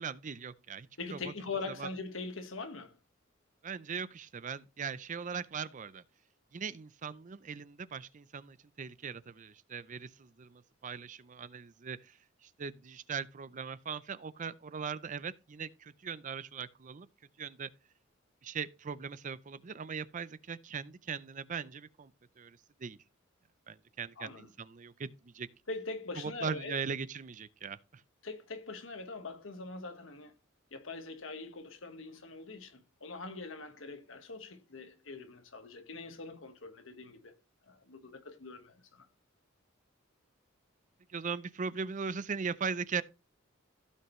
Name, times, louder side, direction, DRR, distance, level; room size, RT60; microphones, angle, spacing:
voice 1, 0.0-1.2 1.8-1.9 3.6-6.0 6.5-12.0 12.6-17.1 17.4-17.7 18.4-22.1 22.4-23.0 23.7-25.5 26.2-27.8 41.1-43.0, right 6 dB, 40° right, 0.5 m, -39 dB
voice 2, 1.0-3.0 24.2-24.5 25.7-26.8 28.2-30.3 30.7-37.3 37.7-39.1, left 3 dB, 70° left, 1.5 m, -43 dB
15.5 x 5.5 x 3.1 m
head